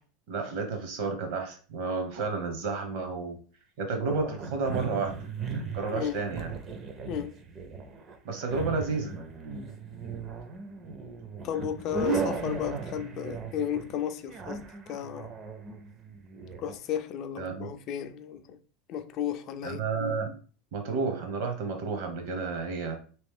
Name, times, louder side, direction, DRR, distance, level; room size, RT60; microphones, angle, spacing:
voice 1, 0.3-3.4 3.8-5.2 5.7-6.5 8.2-9.1 17.4-17.7 19.6-20.3 20.7-22.9, right 4 dB, 60° right, 1.0 m, -31 dB
sound 1, 4.1-16.7, right 4 dB, 25° right, 0.5 m, -37 dB
voice 2, 11.4-15.3 16.6-18.6 18.9-19.8, left 9 dB, 40° left, 0.4 m, -34 dB
3.2 x 3.0 x 3.6 m
supercardioid pair, 160°, 0 cm